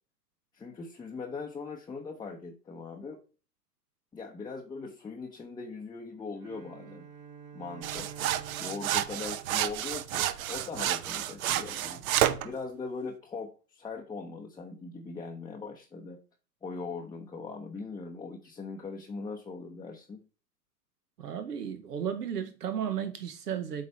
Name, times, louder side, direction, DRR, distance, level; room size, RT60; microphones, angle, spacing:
voice 1, 0.5-3.2 4.1-7.1 7.5-8.1 8.6-12.0 12.4-16.2 16.6-20.2, left 4 dB, 10° left, 0.7 m, -40 dB
Bowed string instrument, 6.4-10.6, right 7 dB, 40° right, 1.3 m, -49 dB
sound 1, 7.8-12.5, right 12 dB, 65° right, 0.8 m, -30 dB
voice 2, 21.2-23.9, right 8 dB, 85° right, 1.0 m, -34 dB
8.2 x 3.3 x 5.4 m
hypercardioid pair, 110°, 47 cm